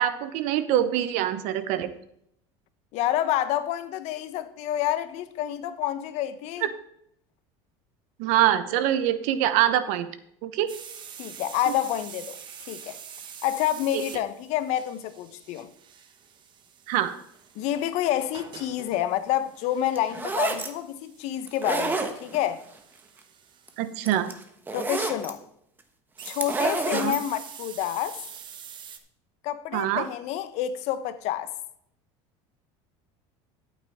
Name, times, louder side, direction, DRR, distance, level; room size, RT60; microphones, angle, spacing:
voice 1, 0.0-1.9 8.2-10.1 10.4-10.7 16.9-17.1 23.8-24.3 26.9-27.2 29.7-30.1, right 12 dB, 70° right, 1.0 m, -24 dB
voice 2, 2.9-6.7 11.2-12.4 12.7-13.0 13.4-15.7 17.5-22.6 24.7-25.4 26.2-28.2 29.4-31.5, left 12 dB, 60° left, 1.0 m, -28 dB
sound 1, 10.7-24.3 26.2-29.0, right 8 dB, 35° right, 1.1 m, -46 dB
sound 2, 20.0-20.7 21.5-22.5 23.7-23.8 24.0-25.3 26.2-27.2, right 3 dB, 15° right, 1.1 m, -28 dB
12.0 x 8.7 x 3.6 m
cardioid pair, 135°, 13 cm